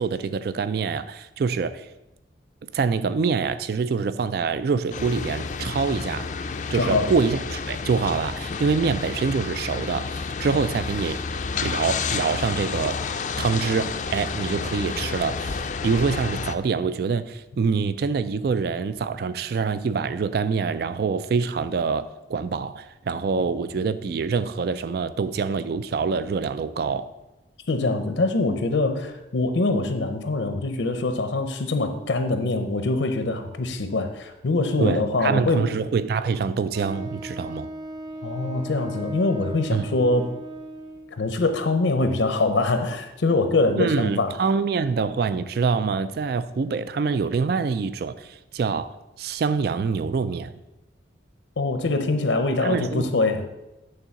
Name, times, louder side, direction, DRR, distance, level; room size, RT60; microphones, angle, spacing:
voice 1, 0.0-1.9 2.7-6.3 6.7-11.2 11.6-13.0 13.4-27.1 34.8-37.7 39.7-39.9 43.8-50.5 52.6-53.1, right 5 dB, 55° right, 0.3 m, -25 dB
sound 1, 4.9-16.6, left 5 dB, 40° left, 0.4 m, -30 dB
voice 2, 6.8-7.1 27.7-35.6 38.2-40.3 41.1-44.3 51.6-53.4, left 2 dB, 80° left, 0.6 m, -24 dB
Wind instrument woodwind instrument, 36.7-41.2, right 1 dB, 20° right, 0.7 m, -37 dB
8.9 x 3.8 x 6.9 m
head